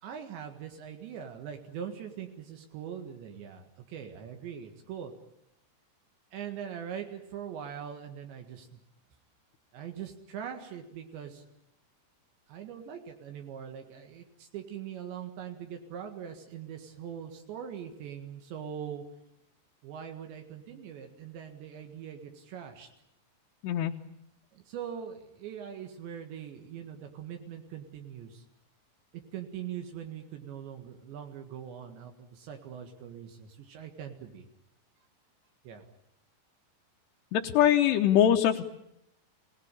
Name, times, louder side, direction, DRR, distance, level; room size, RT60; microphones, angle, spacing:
voice 1, 0.0-5.1 6.3-8.8 9.7-11.4 12.5-19.0 19.8-22.9 24.5-28.4 29.1-34.5 35.7-35.8, right 8 dB, 75° right, 5 dB, 4.0 m, -42 dB
voice 2, 37.3-38.6, left 10 dB, 75° left, 1 dB, 3.0 m, -23 dB
25.5 x 18.0 x 10.0 m, 0.80 s
omnidirectional pair, 5.2 m